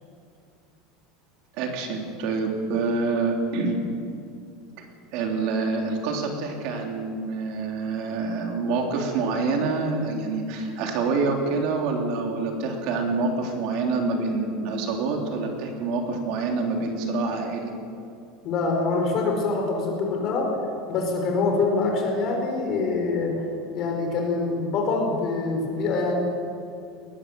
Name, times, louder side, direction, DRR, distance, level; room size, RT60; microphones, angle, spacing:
voice 1, 1.6-3.8 4.8-4.9 5.1-17.7, right 3 dB, 45° right, 2 dB, 3.2 m, -26 dB
voice 2, 18.4-20.5 20.9-23.4 23.7-26.2, left 3 dB, 35° left, 2 dB, 4.8 m, -25 dB
21.0 x 19.5 x 7.7 m, 2.4 s
supercardioid pair, 180°, 0 cm